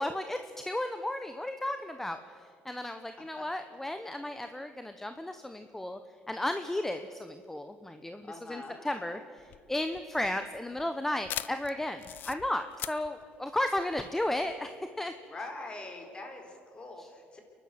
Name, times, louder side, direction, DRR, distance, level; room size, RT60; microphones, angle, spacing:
voice 1, 0.0-6.0 6.3-15.1 17.0-17.1, left 1 dB, 10° left, 8 dB, 0.9 m, -34 dB
voice 2, 8.2-9.2 15.3-17.4, left 2 dB, 30° left, 3 dB, 4.0 m, -44 dB
sound 1, 9.4-14.5, left 12 dB, 65° left, 0.6 m, -42 dB
29.0 x 11.5 x 7.8 m, 2.3 s
cardioid pair, 110°, 4 cm